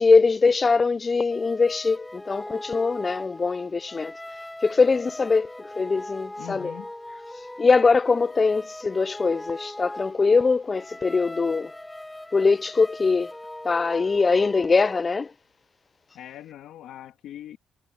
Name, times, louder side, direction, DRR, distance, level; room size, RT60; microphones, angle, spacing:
voice 1, 0.0-4.1 4.6-6.7 7.6-11.7 12.3-13.3 13.6-15.3, left 4 dB, 30° left, 0.4 m, -22 dB
sound 1, 1.3-15.0, left 1 dB, 10° left, 2.1 m, -40 dB
voice 2, 6.4-6.9 16.1-17.6, left 12 dB, 85° left, 2.4 m, -41 dB
cardioid pair, 90°, 0 cm